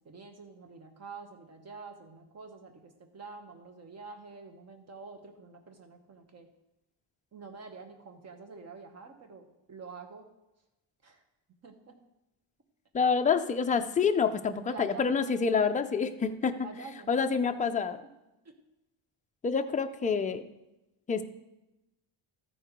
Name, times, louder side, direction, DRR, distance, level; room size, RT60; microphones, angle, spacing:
voice 1, 0.0-6.5 7.3-10.2 11.0-11.2 11.6-11.9 14.7-15.2 16.6-17.2 18.4-18.5, right 4 dB, 30° right, 6 dB, 1.1 m, -47 dB
voice 2, 12.9-16.7 17.1-18.0 19.4-20.5 21.1-21.2, left 5 dB, 20° left, 6 dB, 0.3 m, -27 dB
13.5 x 4.7 x 5.1 m, 0.95 s
cardioid pair, 160°, 48 cm